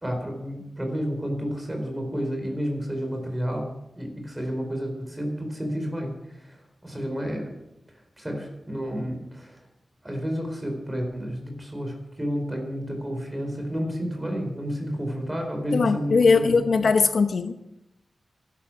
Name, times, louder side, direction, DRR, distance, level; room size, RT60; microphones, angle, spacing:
voice 1, 0.0-6.4 6.8-7.5 8.2-9.6 10.0-16.9, equal, 10° right, 3 dB, 4.3 m, -31 dB
voice 2, 15.7-17.6, left 4 dB, 70° left, 9 dB, 0.8 m, -20 dB
15.5 x 12.0 x 6.2 m, 0.88 s
wide cardioid pair, 155°, 0 cm